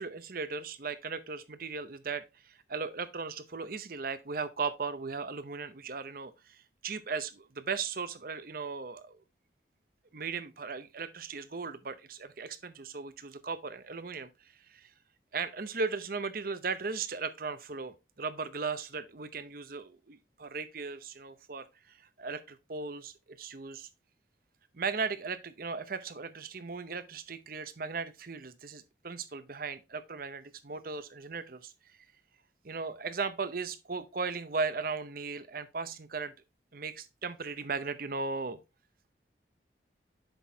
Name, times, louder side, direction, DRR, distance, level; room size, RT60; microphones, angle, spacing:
voice 1, 0.0-9.2 10.1-14.3 14.7-14.9 15.3-23.9 24.7-31.7 32.6-36.3 36.7-38.6, right 4 dB, 50° right, 0.7 m, -37 dB
8.0 x 6.2 x 2.8 m
head